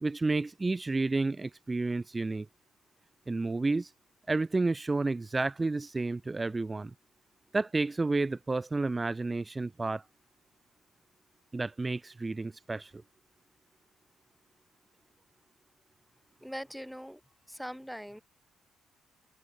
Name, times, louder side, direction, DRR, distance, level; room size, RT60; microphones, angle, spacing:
voice 1, 0.0-2.5 3.3-3.9 4.3-6.9 7.5-10.0 11.5-12.9, right 3 dB, 20° right, 0.4 m, -30 dB
voice 2, 16.4-17.2 17.5-18.2, equal, ahead, 2.7 m, -41 dB
cardioid pair, 90°, 0 cm